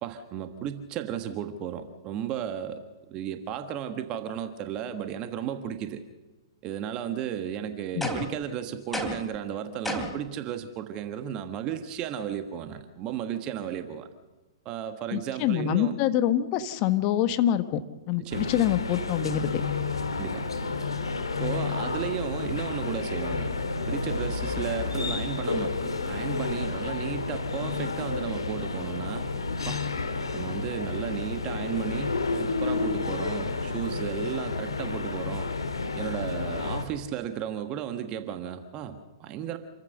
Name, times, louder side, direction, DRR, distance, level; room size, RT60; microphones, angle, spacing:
voice 1, 0.0-2.8 3.1-6.0 6.6-14.1 14.6-16.0 18.2-18.5 20.2-20.4 21.4-23.5 23.9-29.2 29.6-29.8 30.3-35.5 35.9-39.6, right 9 dB, 30° right, 8 dB, 1.5 m, -34 dB
sound 1, 8.0-8.4 8.9-9.4 9.8-10.3, equal, 5° left, 3.0 m, -31 dB
voice 2, 15.1-17.8 18.1-19.6, left 11 dB, 35° left, 11 dB, 1.4 m, -25 dB
sound 2, 18.3-36.9, left 3 dB, 80° left, 2.0 m, -30 dB
28.0 x 14.5 x 6.6 m, 1.1 s
figure-of-eight pair, 115°, 3 cm